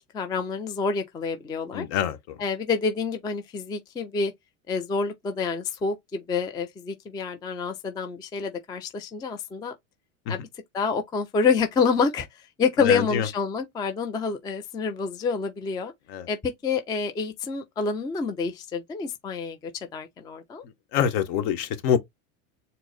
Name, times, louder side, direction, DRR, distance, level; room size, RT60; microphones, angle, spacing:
voice 1, 0.1-1.9 2.4-4.3 4.7-9.7 10.3-10.4 10.7-12.3 12.6-15.9 16.3-20.6, left 5 dB, 10° left, 0.4 m, -27 dB
voice 2, 1.7-2.4 10.3-10.4 12.8-13.3 16.1-16.3 20.9-22.0, left 8 dB, 60° left, 1.1 m, -25 dB
4.5 x 2.0 x 3.9 m
supercardioid pair, 120°, 42 cm